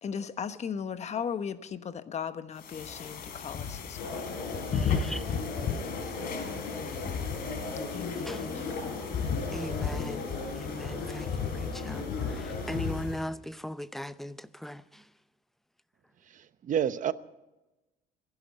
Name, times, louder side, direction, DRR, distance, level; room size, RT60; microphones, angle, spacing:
voice 1, 0.0-4.2 4.8-4.9 7.9-8.8, left 7 dB, 40° left, 1.2 m, -37 dB
sound 1, 2.6-13.3, left 6 dB, 60° left, 3.4 m, -35 dB
sound 2, 4.0-12.9, left 3 dB, 90° left, 5.7 m, -37 dB
voice 2, 4.7-5.3 8.1-8.8 9.5-15.1, equal, ahead, 0.7 m, -39 dB
voice 3, 16.3-17.1, right 9 dB, 50° right, 0.9 m, -29 dB
26.5 x 11.0 x 4.3 m
cardioid pair, 110°, 17 cm